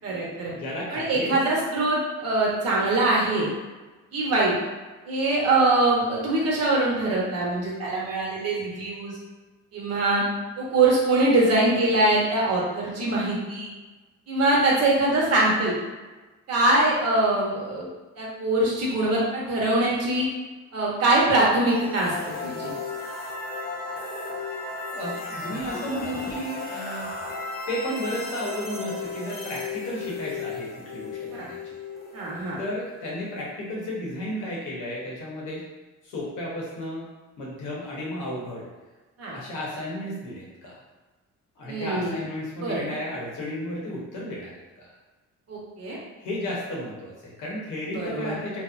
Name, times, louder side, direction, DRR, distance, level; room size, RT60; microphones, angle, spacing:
voice 1, 0.0-0.5 0.9-3.5 4.1-4.5 5.1-9.2 9.7-10.2 10.6-13.7 14.3-15.8 16.5-17.9 18.2-20.3 20.7-22.1 22.4-22.7 31.4-31.5 32.1-32.6 39.2-39.4 41.7-42.3 42.6-42.9 45.5-46.0 47.9-48.4, right 2 dB, 55° right, -4 dB, 0.9 m, -23 dB
voice 2, 0.5-1.4 24.9-27.1 27.7-31.8 32.6-35.6 36.0-37.1 37.4-38.6 39.3-40.8 41.6-44.5 44.8-44.9 46.2-48.6, left 1 dB, 85° left, -4 dB, 0.9 m, -33 dB
sound 1, 21.7-33.5, left 3 dB, 30° left, 0.7 m, -35 dB
2.8 x 2.1 x 2.4 m, 1.2 s
cardioid pair, 90°, 30 cm